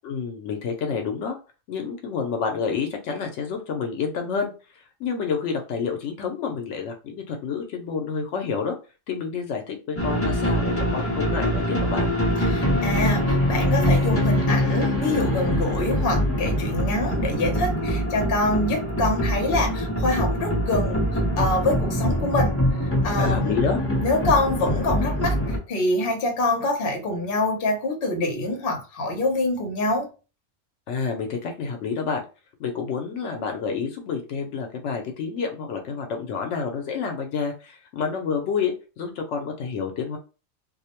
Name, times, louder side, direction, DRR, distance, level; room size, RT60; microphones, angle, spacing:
voice 1, 0.0-1.4 1.7-4.5 5.0-8.7 9.1-12.1 23.2-23.8 30.9-32.2 32.6-40.2, left 5 dB, 85° left, 0.9 m, -29 dB
sound 1, 10.0-25.6, equal, 15° left, 0.6 m, -24 dB
voice 2, 12.4-23.6 24.0-30.1, left 2 dB, 55° left, 0.9 m, -25 dB
2.5 x 2.0 x 2.9 m
omnidirectional pair, 1.2 m